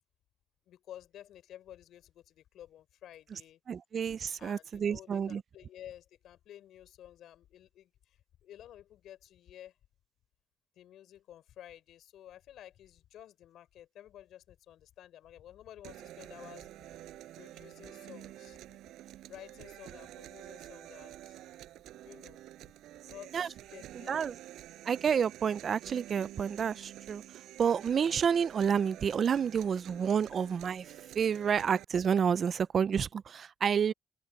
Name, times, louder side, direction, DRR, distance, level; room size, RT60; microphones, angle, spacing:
voice 1, 0.7-3.6 4.4-9.8 10.8-16.7 17.4-18.8 19.3-21.4 22.0-22.4 23.0-24.3 33.9-34.0, left 11 dB, 80° left, 4.2 m, -52 dB
voice 2, 3.7-5.4 23.3-23.5 24.1-24.4 24.9-27.2 27.6-30.9 31.2-33.9, right 7 dB, 50° right, 0.5 m, -29 dB
sound 1, 15.8-31.8, right 14 dB, 85° right, 5.7 m, -49 dB
cardioid pair, 90°, 0 cm